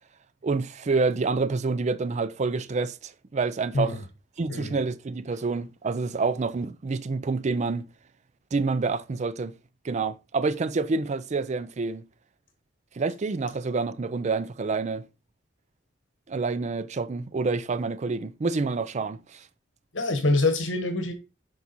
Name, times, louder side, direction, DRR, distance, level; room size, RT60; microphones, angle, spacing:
voice 1, 0.4-4.0 4.4-7.9 8.5-9.5 9.8-12.0 13.0-15.0 16.3-19.4, right 4 dB, 40° right, 0.4 m, -28 dB
voice 2, 19.9-21.1, left 2 dB, 75° left, 1.1 m, -25 dB
7.1 x 4.7 x 4.0 m
head